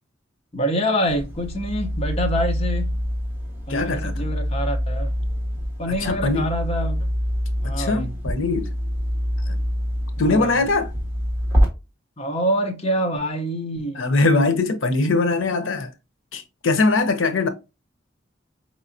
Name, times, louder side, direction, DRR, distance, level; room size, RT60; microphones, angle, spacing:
voice 1, 0.5-2.9 3.7-5.1 5.8-7.1 7.6-8.1 10.2-10.5 12.2-14.1, equal, 30° left, 0.9 m, -26 dB
sound 1, 1.1-11.7, equal, 10° right, 1.2 m, -25 dB
voice 2, 3.7-4.3 6.0-6.5 7.6-8.7 9.5-9.6 10.2-10.9 13.9-15.9 16.3-17.5, left 3 dB, 85° left, 0.7 m, -21 dB
4.8 x 3.1 x 2.6 m
head